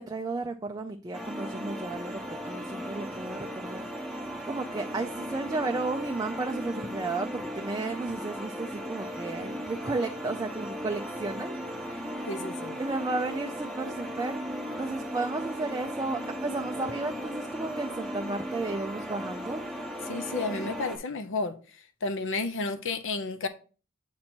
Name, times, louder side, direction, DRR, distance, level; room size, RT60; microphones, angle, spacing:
voice 1, 0.0-3.8 4.4-12.1 12.8-14.4 14.8-19.7, right 3 dB, 15° right, 0.3 m, -33 dB
sound 1, 1.1-21.0, equal, ahead, 0.9 m, -37 dB
voice 2, 12.3-12.8 20.1-21.5 22.0-23.5, left 3 dB, 60° left, 0.7 m, -31 dB
7.5 x 2.9 x 4.3 m
head